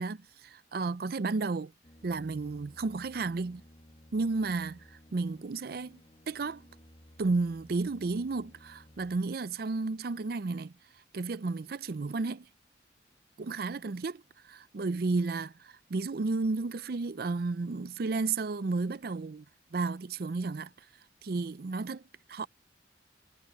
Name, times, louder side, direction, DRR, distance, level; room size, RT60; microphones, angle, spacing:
voice 1, 0.0-1.7 2.0-3.6 4.1-4.8 5.1-6.0 6.3-6.6 7.2-10.7 11.1-12.5 13.4-14.2 14.5-19.4 19.7-20.7 21.2-22.0 22.3-22.5, right 3 dB, 55° right, 0.5 m, -32 dB
sound 1, 1.8-9.2, left 1 dB, 35° left, 1.5 m, -57 dB
head